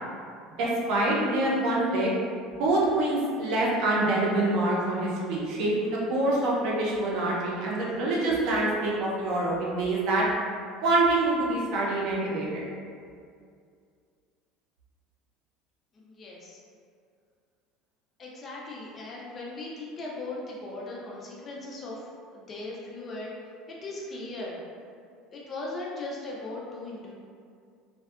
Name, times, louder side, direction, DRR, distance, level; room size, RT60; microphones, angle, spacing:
voice 1, 0.6-2.1 2.6-10.2 10.8-12.6, right 2 dB, 55° right, -4 dB, 0.6 m, -26 dB
voice 2, 15.9-16.6 18.2-22.0 22.3-23.3 23.7-24.6 25.3-27.1, left 2 dB, 20° left, -4 dB, 0.3 m, -38 dB
2.6 x 2.2 x 2.4 m, 2.3 s
cardioid pair, 175°, 0 cm